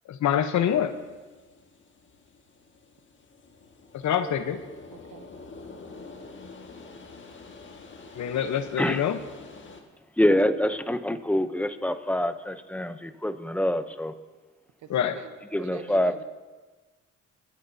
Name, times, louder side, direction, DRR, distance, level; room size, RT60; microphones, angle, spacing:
voice 1, 0.1-0.9 3.9-4.6 8.1-9.2 14.9-15.2, left 9 dB, 70° left, 9 dB, 1.1 m, -25 dB
sound 1, 0.6-9.8, left 3 dB, 40° left, 1.8 m, -47 dB
voice 2, 4.9-5.2 14.8-16.2, right 8 dB, 75° right, 9 dB, 1.1 m, -44 dB
voice 3, 10.2-14.1 15.5-16.2, left 1 dB, 5° left, 10 dB, 0.8 m, -25 dB
22.5 x 12.5 x 2.8 m, 1.3 s
cardioid pair, 90°, 30 cm